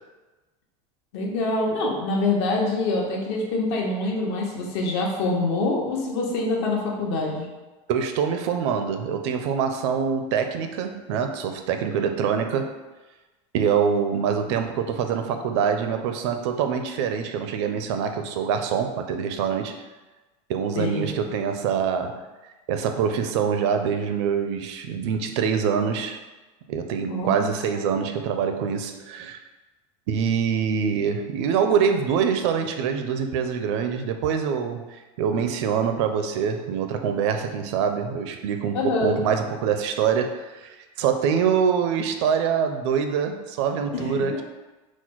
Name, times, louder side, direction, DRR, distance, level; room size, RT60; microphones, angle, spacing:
voice 1, 1.1-7.5 20.7-21.1 27.1-27.5 38.7-39.2 43.9-44.4, left 2 dB, 60° left, -2 dB, 1.0 m, -25 dB
voice 2, 7.9-12.7 13.5-19.8 20.5-22.3 22.7-26.2 26.7-29.4 30.1-44.4, right 7 dB, 65° right, 6 dB, 0.4 m, -25 dB
4.2 x 2.1 x 4.5 m, 1.2 s
cardioid pair, 175°, 16 cm